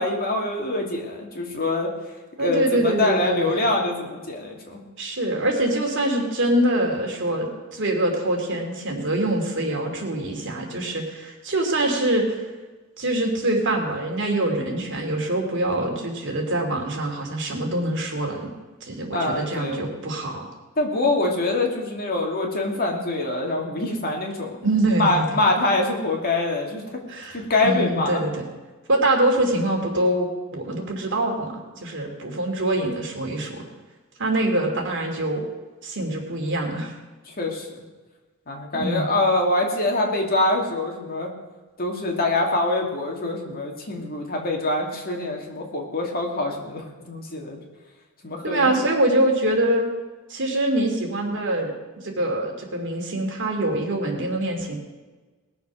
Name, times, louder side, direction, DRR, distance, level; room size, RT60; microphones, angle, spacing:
voice 1, 0.0-1.9 2.4-4.8 19.1-19.8 20.8-24.6 25.0-26.8 27.3-28.2 37.3-37.8 38.5-41.3 41.8-47.6 48.2-48.7, left 2 dB, 45° left, 0 dB, 2.4 m, -24 dB
voice 2, 2.4-3.6 5.0-12.5 13.0-18.5 18.8-20.5 24.6-25.2 27.1-28.4 28.9-33.7 34.2-35.4 35.8-36.9 38.7-39.1 48.4-49.9 50.3-54.8, right 1 dB, 60° right, 1 dB, 2.7 m, -24 dB
19.5 x 7.0 x 6.2 m, 1.3 s
head